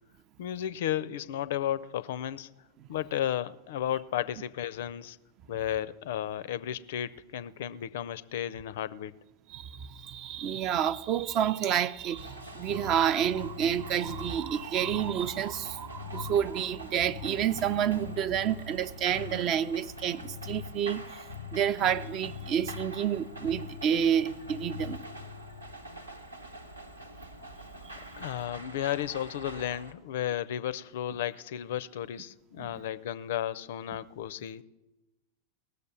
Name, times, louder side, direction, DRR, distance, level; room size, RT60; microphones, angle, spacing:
voice 1, 0.4-2.5 2.9-5.2 5.5-9.1 28.2-34.6, left 11 dB, 55° left, 0.4 m, -33 dB
voice 2, 9.5-21.2 21.5-25.1 32.6-32.7, right 9 dB, 35° right, 0.4 m, -29 dB
sound 1, 12.2-29.9, left 3 dB, 85° right, 1.0 m, -43 dB
18.5 x 6.7 x 6.8 m
figure-of-eight pair, 90°, 0 cm